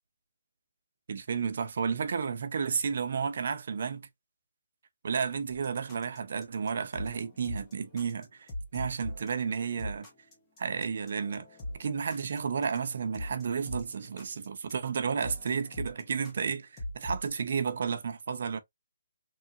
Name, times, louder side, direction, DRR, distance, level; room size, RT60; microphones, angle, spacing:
voice 1, 1.1-4.1 5.0-10.1 10.6-11.5 11.8-18.6, right 6 dB, 45° right, 0.4 m, -32 dB
sound 1, 5.5-17.3, left 1 dB, 10° left, 0.7 m, -42 dB
3.0 x 2.3 x 2.6 m
hypercardioid pair, 180°, 0 cm